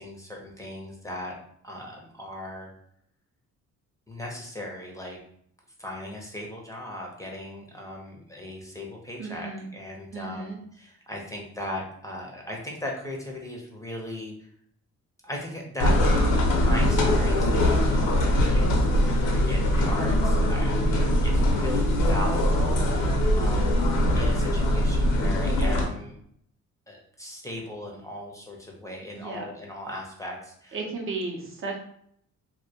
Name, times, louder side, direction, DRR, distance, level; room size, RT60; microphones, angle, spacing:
voice 1, 0.0-1.3 1.6-2.7 4.1-5.2 5.8-14.5 15.2-16.0 16.5-18.3 18.5-23.9 24.1-26.2 26.9-30.8, left 1 dB, 10° left, -1 dB, 0.5 m, -38 dB
voice 2, 9.2-9.7 10.1-10.6 29.1-29.5 30.7-31.8, right 3 dB, 45° right, 1 dB, 0.5 m, -34 dB
sound 1, 15.8-25.8, left 1 dB, 90° left, 0.6 m, -22 dB
2.1 x 2.1 x 2.7 m, 0.67 s
cardioid pair, 90°, 30 cm